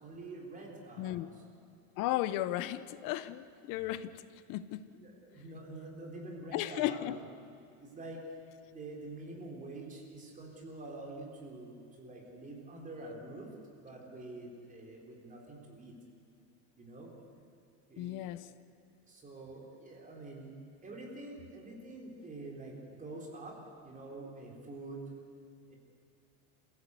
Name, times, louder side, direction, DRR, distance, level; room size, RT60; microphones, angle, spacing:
voice 1, 0.0-1.4 4.9-7.3 7.8-8.2 8.7-15.9 16.8-17.1 17.9-18.4 19.1-20.5 20.8-25.0 25.7-25.8, right 2 dB, 20° right, 0 dB, 4.1 m, -46 dB
voice 2, 2.0-4.2 4.5-4.8 6.5-7.2 18.0-18.4, left 14 dB, 45° left, 14 dB, 1.0 m, -35 dB
27.0 x 16.0 x 8.3 m, 2.4 s
supercardioid pair, 150°, 43 cm